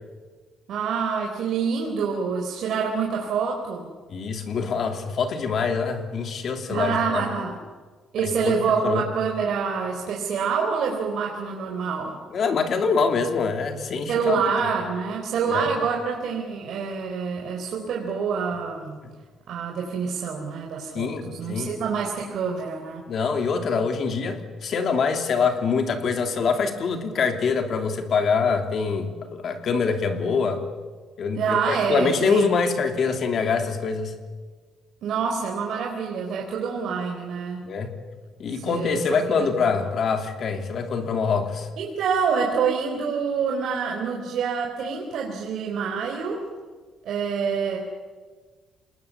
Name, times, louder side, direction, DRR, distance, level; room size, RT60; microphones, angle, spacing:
voice 1, 0.7-3.9 6.7-7.6 8.1-12.2 14.1-19.0 19.5-23.0 31.4-32.5 35.0-37.6 38.5-39.5 39.8-39.9 41.8-46.4 47.0-47.8, right 6 dB, 55° right, 0 dB, 4.0 m, -26 dB
voice 2, 4.1-7.2 8.2-9.0 12.3-14.4 15.5-15.7 20.9-21.7 23.1-30.6 31.2-34.1 37.6-37.9 38.4-41.7, left 5 dB, 45° left, 5 dB, 3.0 m, -25 dB
28.0 x 20.5 x 8.7 m, 1.4 s
cardioid pair, 165°, 0 cm